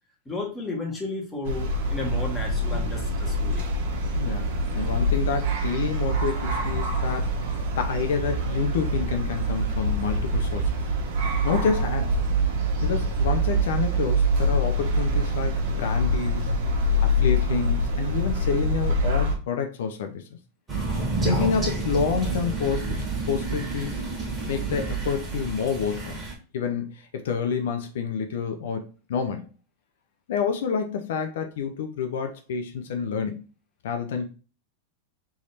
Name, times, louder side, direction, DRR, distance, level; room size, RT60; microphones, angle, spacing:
voice 1, 0.2-3.6, left 2 dB, 15° left, -1 dB, 1.5 m, -33 dB
sound 1, 1.5-19.4, right 1 dB, 65° right, 1.2 m, -25 dB
voice 2, 4.2-7.4 7.8-10.8 11.4-12.1 12.8-16.5 17.0-20.3 21.2-24.0 24.5-26.2 26.5-29.5 30.3-33.5 33.8-34.3, left 6 dB, 80° left, 6 dB, 0.6 m, -28 dB
Crow, 20.7-26.3, right 3 dB, 20° right, 1.7 m, -29 dB
3.6 x 3.1 x 4.2 m, 0.34 s
supercardioid pair, 140°, 0 cm